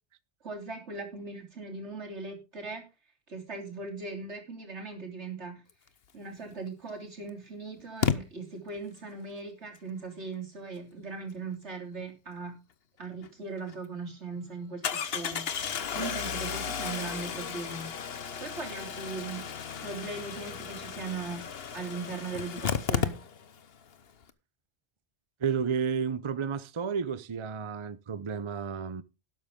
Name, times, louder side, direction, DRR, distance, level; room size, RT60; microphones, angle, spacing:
voice 1, 0.4-2.8 3.3-5.6 6.1-12.6 13.0-17.9 18.4-19.4 19.8-21.4 21.7-23.2, right 3 dB, 80° right, 3.6 m, -39 dB
Engine starting, 6.5-6.6 8.0-8.2 13.2-13.3 13.7-13.8 14.8-23.6 23.9-24.0 24.2-24.3, left 7 dB, 60° left, 1.1 m, -33 dB
voice 2, 25.4-29.0, right 6 dB, 35° right, 0.5 m, -31 dB
12.5 x 11.0 x 3.7 m
omnidirectional pair, 1.1 m